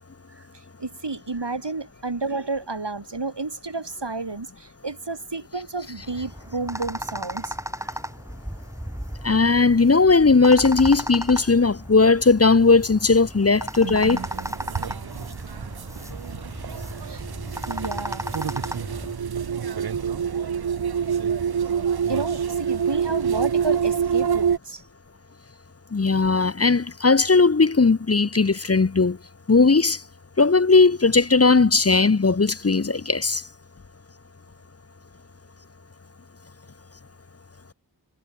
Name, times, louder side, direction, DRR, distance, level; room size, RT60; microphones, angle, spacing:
voice 1, 0.3-7.9 16.9-17.2 17.7-18.2 22.1-24.8, right 3 dB, 90° right, 4.6 m, -31 dB
sound 1, 5.9-19.2, equal, 5° right, 4.1 m, -35 dB
voice 2, 9.2-14.2 25.9-29.2 29.5-30.0 30.4-33.4, left 4 dB, 35° left, 0.7 m, -18 dB
sound 2, 13.8-24.6, right 7 dB, 65° right, 0.7 m, -27 dB
wide cardioid pair, 45°, 41 cm